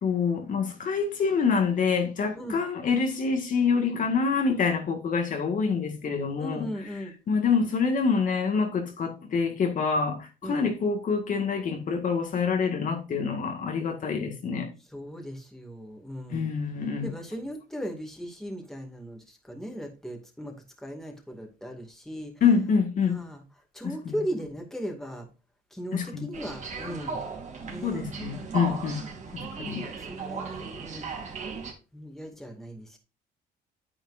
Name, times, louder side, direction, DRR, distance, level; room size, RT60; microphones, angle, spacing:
voice 1, 0.0-6.7 7.3-14.7 16.3-17.1 22.4-23.2 24.1-24.2 25.9-26.2 27.8-29.0 29.6-29.8, left 5 dB, 50° left, 2.0 m, -26 dB
voice 2, 6.4-7.1 10.4-10.6 14.9-16.6 17.0-22.4 23.0-23.4 23.7-25.3 25.7-27.2 27.6-28.0 29.3-29.4 29.7-31.1 31.9-33.0, equal, ahead, 2.4 m, -38 dB
sound 1, 26.3-31.7, right 5 dB, 45° right, 3.1 m, -37 dB
9.3 x 8.8 x 2.7 m
cardioid pair, 100°, 18 cm